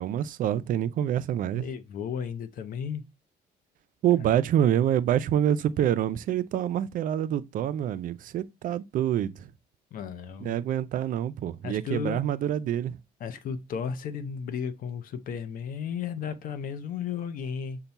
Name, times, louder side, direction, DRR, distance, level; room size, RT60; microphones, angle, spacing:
voice 1, 0.0-1.7 4.0-9.5 10.4-13.0, right 10 dB, 55° right, 0.4 m, -26 dB
voice 2, 1.5-3.0 9.9-10.6 11.6-12.2 13.2-17.8, left 7 dB, 55° left, 0.6 m, -34 dB
5.6 x 2.2 x 4.0 m
cardioid pair, 110°, 17 cm